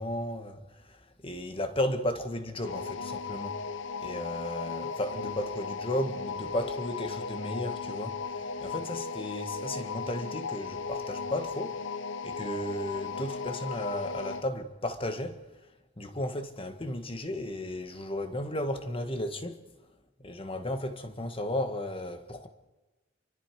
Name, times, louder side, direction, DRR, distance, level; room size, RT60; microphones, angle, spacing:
voice 1, 0.0-3.6 4.0-11.8 12.2-15.4 16.0-19.6 20.2-22.5, left 1 dB, 30° left, 1.7 m, -34 dB
sound 1, 2.6-14.5, left 5 dB, 65° left, 0.9 m, -36 dB
30.0 x 23.5 x 4.9 m
head